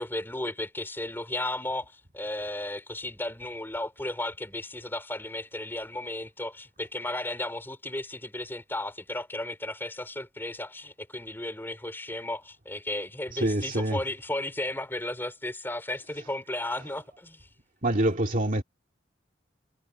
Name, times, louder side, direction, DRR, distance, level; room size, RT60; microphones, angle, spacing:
voice 1, 0.0-17.5, left 1 dB, 10° left, 3.4 m, -34 dB
voice 2, 13.3-14.0 17.8-18.6, right 1 dB, 45° right, 2.5 m, -26 dB
head